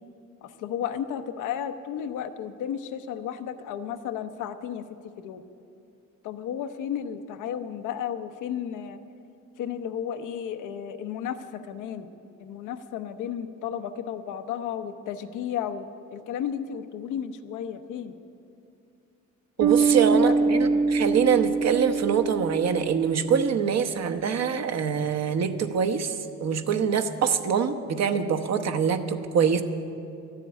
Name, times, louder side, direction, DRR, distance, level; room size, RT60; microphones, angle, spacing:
voice 1, 0.4-4.8 5.2-5.4 6.2-9.0 9.6-12.1 12.4-18.1 19.8-20.9, left 9 dB, 90° left, 8 dB, 0.8 m, -33 dB
voice 2, 19.6-29.6, right 7 dB, 60° right, 8 dB, 1.0 m, -24 dB
Bass guitar, 19.6-23.1, right 4 dB, 85° right, 1.3 m, -24 dB
13.0 x 7.5 x 9.8 m, 2.6 s
cardioid pair, 90°, 30 cm